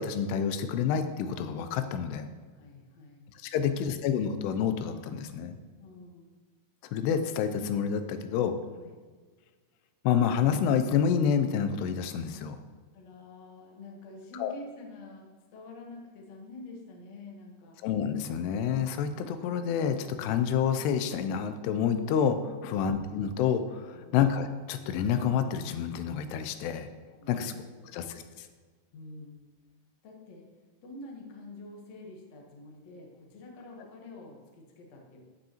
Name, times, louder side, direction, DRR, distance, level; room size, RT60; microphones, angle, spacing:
voice 1, 0.0-2.3 3.4-5.6 6.9-8.6 10.0-12.6 14.4-14.5 17.8-26.9 27.3-27.5 27.9-28.5, left 7 dB, 85° left, 9 dB, 2.6 m, -28 dB
voice 2, 2.5-3.3 3.6-3.9 5.8-6.3 8.7-9.0 12.9-17.8 23.9-24.2 27.1-27.5 27.8-28.1 28.9-29.4 30.0-30.5 30.8-35.2, left 2 dB, 65° left, 0 dB, 1.7 m, -47 dB
15.0 x 5.3 x 2.9 m, 1.4 s
omnidirectional pair, 4.7 m